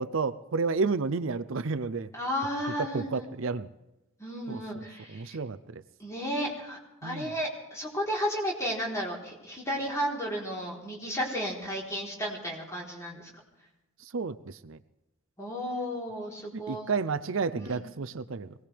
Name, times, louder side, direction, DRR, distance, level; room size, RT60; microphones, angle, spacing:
voice 1, 0.0-2.1 2.8-3.7 4.5-4.6 5.1-5.8 7.0-7.3 14.0-14.8 16.5-18.5, right 4 dB, 70° right, 12 dB, 0.6 m, -31 dB
voice 2, 2.1-3.2 4.2-5.4 6.0-13.3 15.4-16.9 17.6-17.8, equal, 15° left, -3 dB, 3.8 m, -33 dB
23.0 x 18.5 x 3.4 m, 0.99 s
head